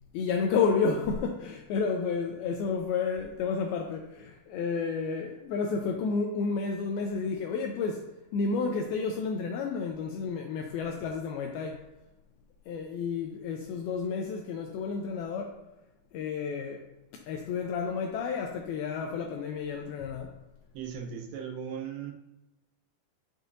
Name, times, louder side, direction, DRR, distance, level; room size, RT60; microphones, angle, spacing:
voice 1, 0.1-11.8 12.7-15.6 16.1-16.8 17.1-20.3, left 5 dB, 85° left, 2 dB, 2.2 m, -31 dB
voice 2, 20.7-22.1, right 7 dB, 85° right, 2 dB, 3.1 m, -37 dB
9.7 x 6.5 x 2.6 m, 1.0 s
omnidirectional pair, 4.9 m